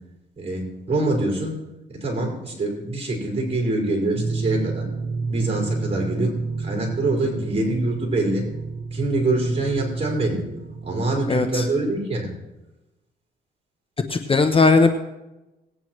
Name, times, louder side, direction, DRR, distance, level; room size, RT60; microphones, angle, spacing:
voice 1, 0.4-1.6 1.9-4.9 5.3-8.4 8.9-10.4 10.8-12.3, right 2 dB, 30° right, 0 dB, 5.0 m, -25 dB
sound 1, 4.1-11.9, right 4 dB, 70° right, 1.3 m, -30 dB
voice 2, 11.3-11.7 14.1-14.9, left 4 dB, 25° left, 7 dB, 0.8 m, -17 dB
19.0 x 9.2 x 3.1 m, 1.0 s
cardioid pair, 90°, 20 cm